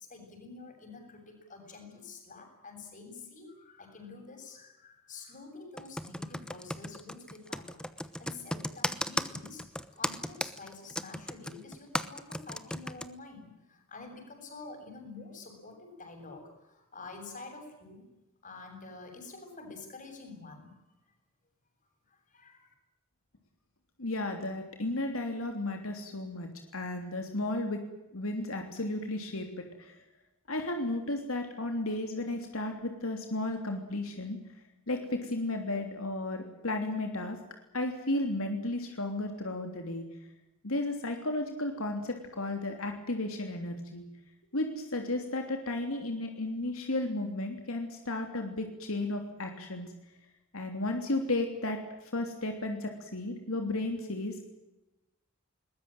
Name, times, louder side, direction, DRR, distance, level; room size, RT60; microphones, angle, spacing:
voice 1, 0.0-7.8 8.2-9.6 9.9-18.1 18.4-20.8 22.1-22.7, left 3 dB, 40° left, 4 dB, 7.8 m, -48 dB
Computer keyboard, 5.8-13.1, left 1 dB, 5° left, 1.0 m, -35 dB
voice 2, 24.0-27.8 28.1-30.0 30.5-34.4 34.9-37.4 37.7-40.0 40.6-44.0 44.5-49.9 50.5-54.4, left 2 dB, 85° left, 4 dB, 3.2 m, -34 dB
21.5 x 20.5 x 9.1 m, 0.96 s
head